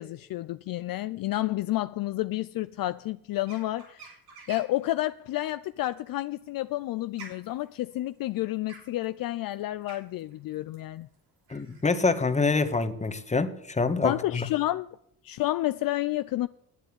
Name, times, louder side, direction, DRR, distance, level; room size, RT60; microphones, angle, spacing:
voice 1, 0.0-4.1 4.5-11.1 14.0-14.9 15.2-16.5, left 16 dB, 60° left, 0.5 m, -30 dB
sound 1, 3.4-4.8 6.2-11.8, right 4 dB, 80° right, 6.1 m, -49 dB
voice 2, 11.5-14.5, left 4 dB, 15° left, 1.4 m, -26 dB
10.0 x 9.0 x 8.5 m
supercardioid pair, 75°, 40 cm